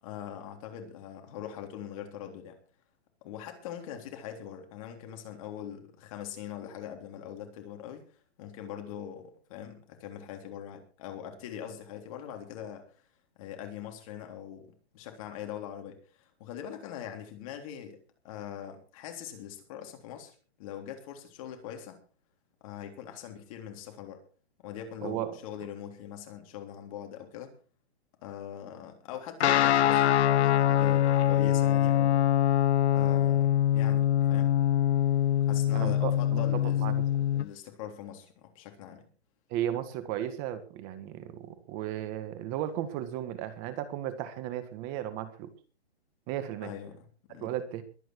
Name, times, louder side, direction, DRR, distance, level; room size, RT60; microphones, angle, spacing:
voice 1, 0.0-2.6 3.2-8.0 8.4-12.8 13.4-22.0 22.6-24.2 24.6-27.5 28.2-32.2 32.9-34.5 35.5-36.9 37.3-39.1 46.6-47.5, left 10 dB, 30° left, 4 dB, 3.4 m, -42 dB
voice 2, 25.0-25.4 35.7-37.2 39.5-45.5 46.3-46.7 47.3-47.8, right 11 dB, 25° right, 11 dB, 1.6 m, -35 dB
Guitar, 29.4-37.5, left 11 dB, 80° left, 0.7 m, -24 dB
22.0 x 9.3 x 4.7 m, 0.38 s
hypercardioid pair, 165°, 33 cm